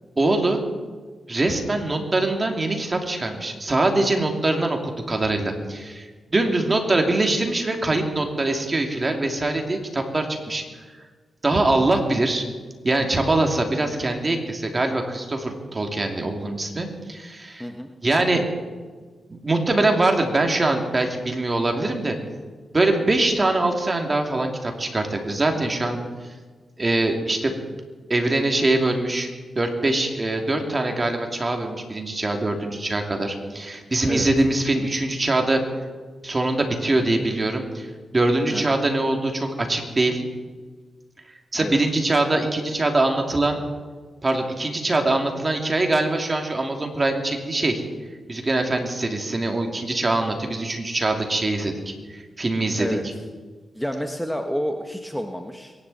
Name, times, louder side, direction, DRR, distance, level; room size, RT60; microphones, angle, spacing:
voice 1, 0.2-0.6 1.3-10.6 11.4-12.4 12.8-17.7 18.0-18.4 19.3-22.2 22.7-26.0 26.8-27.5 28.1-29.3 29.6-35.6 36.2-40.2 41.5-43.6 44.2-47.8 48.3-51.7 52.1-52.9, right 2 dB, 35° right, 3 dB, 2.9 m, -23 dB
voice 2, 17.6-17.9 34.1-34.3 38.5-38.8 41.6-41.8 52.8-53.0 53.7-55.7, equal, 5° left, 5 dB, 1.3 m, -29 dB
23.0 x 11.0 x 4.3 m, 1.4 s
supercardioid pair, 45°, 0 cm